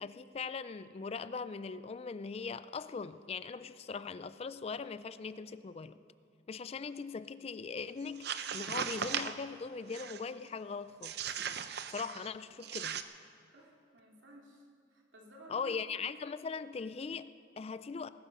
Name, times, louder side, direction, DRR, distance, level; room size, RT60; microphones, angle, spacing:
voice 1, 0.0-6.0 6.5-11.4 11.9-13.0 15.5-18.1, left 5 dB, 30° left, 14 dB, 0.3 m, -40 dB
sound 1, 8.1-9.4 9.9-10.3 11.0-12.3 12.6-13.0, right 8 dB, 55° right, 0.7 m, -38 dB
voice 2, 13.5-15.8, right 1 dB, 75° right, -2 dB, 3.0 m, -55 dB
20.0 x 12.5 x 5.5 m, 2.5 s
head